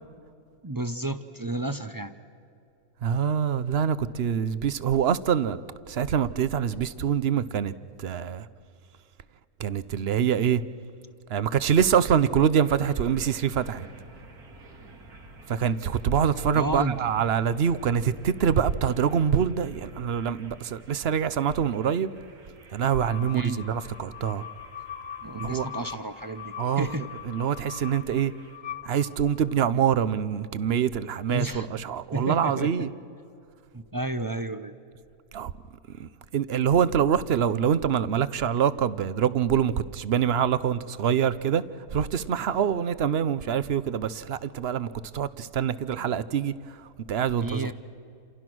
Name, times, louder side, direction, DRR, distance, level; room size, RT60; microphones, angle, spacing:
voice 1, 0.6-2.1 16.5-17.0 23.3-23.7 25.2-27.1 31.3-31.7 32.1-32.9 33.7-34.7 47.4-47.7, right 2 dB, 25° right, 10 dB, 0.4 m, -31 dB
voice 2, 3.0-5.6 5.9-7.7 8.0-8.5 9.6-10.6 11.3-13.9 15.5-22.1 22.7-24.4 25.3-25.7 26.6-26.9 27.2-28.3 28.8-32.9 35.3-35.5 36.0-41.6 41.9-46.8 47.1-47.7, right 8 dB, 50° right, 15 dB, 0.8 m, -25 dB
sound 1, 12.6-28.6, right 2 dB, 80° right, 2.7 m, -51 dB
sound 2, 22.8-29.6, left 9 dB, 45° left, 0.7 m, -41 dB
29.0 x 27.5 x 6.2 m, 2.5 s
omnidirectional pair, 1.6 m